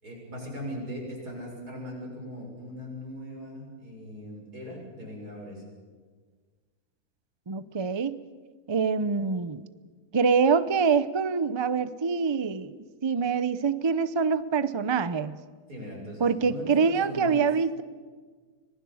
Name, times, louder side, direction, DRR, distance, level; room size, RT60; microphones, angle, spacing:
voice 1, 0.0-5.6 15.7-17.5, equal, 85° right, -1 dB, 7.1 m, -39 dB
voice 2, 7.5-8.2 8.7-9.6 10.1-15.4 16.2-17.8, right 5 dB, 35° right, 14 dB, 0.4 m, -25 dB
25.5 x 20.0 x 7.2 m, 1.5 s
omnidirectional pair, 1.6 m